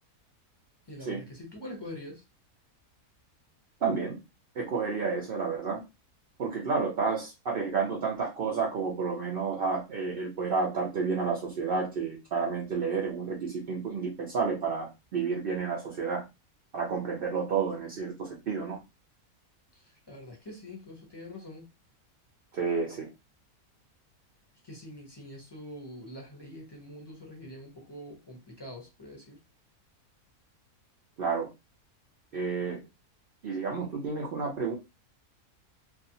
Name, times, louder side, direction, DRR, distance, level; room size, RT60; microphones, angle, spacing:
voice 1, 0.9-2.2 19.7-21.7 24.6-29.4, left 1 dB, 25° left, 0.5 m, -44 dB
voice 2, 3.8-4.2 4.6-5.8 6.4-16.2 16.7-18.8 22.5-23.1 31.2-31.5 32.3-32.8 33.4-34.8, right 5 dB, 60° right, 0.6 m, -30 dB
2.5 x 2.4 x 2.7 m
omnidirectional pair, 1.6 m